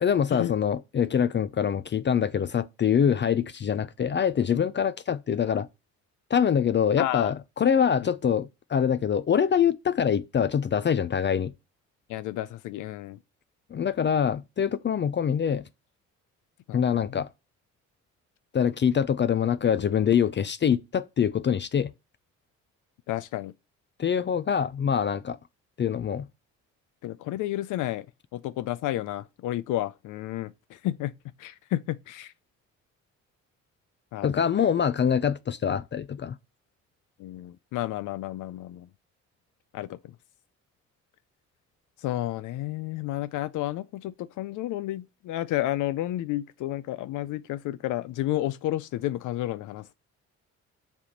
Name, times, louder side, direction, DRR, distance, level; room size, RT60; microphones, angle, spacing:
voice 1, 0.0-5.7 6.3-11.5 13.7-15.7 16.7-17.3 18.5-21.9 24.0-25.4 25.8-26.3 34.2-36.4, left 8 dB, 40° left, 0.5 m, -24 dB
voice 2, 7.0-7.3 8.0-8.1 12.1-13.2 16.7-17.2 23.1-23.5 27.0-28.1 28.3-31.1 31.4-32.3 34.1-34.4 37.2-38.9 39.7-40.1 42.0-49.9, left 14 dB, 80° left, 0.5 m, -31 dB
7.4 x 3.6 x 6.4 m
cardioid pair, 90°, 30 cm